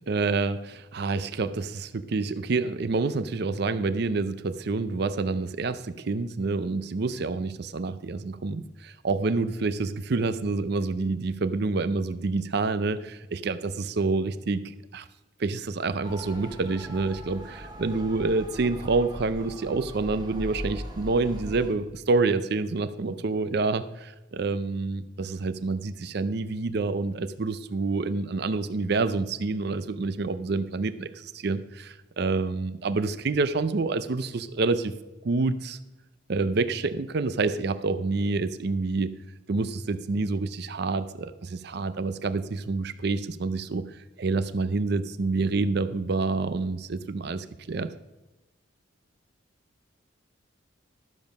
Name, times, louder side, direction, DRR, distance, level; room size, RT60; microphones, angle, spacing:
voice 1, 0.1-15.1 15.4-34.9 35.2-35.8 36.3-39.1 39.5-47.9, right 3 dB, 55° right, 13 dB, 0.5 m, -28 dB
Motor vehicle (road) / Siren, 16.0-21.7, equal, 20° right, 1.2 m, -39 dB
12.5 x 7.1 x 5.3 m, 1.0 s
head